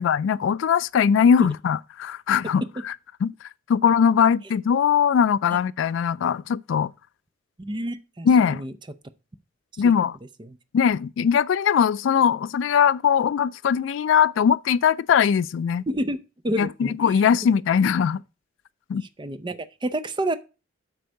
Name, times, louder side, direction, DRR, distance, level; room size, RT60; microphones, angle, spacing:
voice 1, 0.0-2.9 3.2-3.3 3.7-6.9 8.3-8.6 9.8-10.2 10.7-15.8 16.6-18.2 18.9-19.0, left 7 dB, 70° left, 0.3 m, -20 dB
voice 2, 7.6-8.7 9.8-9.9 10.4-10.6 15.9-16.2 16.4-17.2 18.9-20.4, right 1 dB, 25° right, 0.6 m, -29 dB
7.9 x 4.7 x 5.2 m
head